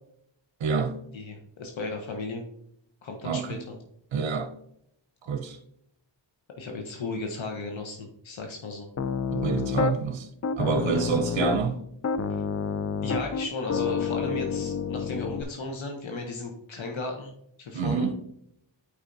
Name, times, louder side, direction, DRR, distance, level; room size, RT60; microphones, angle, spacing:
voice 1, 0.6-1.0 3.2-3.6 4.1-4.5 5.2-5.6 9.3-10.3 10.6-11.8 17.7-18.1, right 6 dB, 75° right, 0.6 m, -27 dB
voice 2, 1.1-2.4 3.0-3.8 6.6-8.9 10.9-11.1 13.0-17.3 17.6-18.1, left 3 dB, 90° left, 0.8 m, -35 dB
Piano, 9.0-10.0 10.4-11.7 12.0-15.4, left 6 dB, 40° left, 0.4 m, -29 dB
8.4 x 4.8 x 2.6 m
wide cardioid pair, 60°, 45 cm